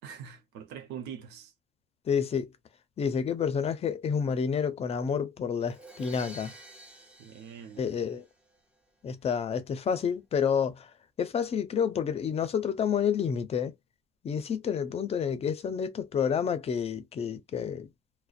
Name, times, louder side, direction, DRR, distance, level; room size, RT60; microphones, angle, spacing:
voice 1, 0.0-1.5 7.2-7.9, right 8 dB, 90° right, 0.7 m, -43 dB
voice 2, 2.1-2.5 3.0-6.5 7.8-8.2 9.0-10.9 11.2-13.7 14.2-17.9, left 7 dB, 40° left, 0.5 m, -29 dB
Crash cymbal, 5.6-8.6, right 1 dB, 5° right, 0.7 m, -49 dB
2.4 x 2.1 x 2.4 m
cardioid pair, 110°, 17 cm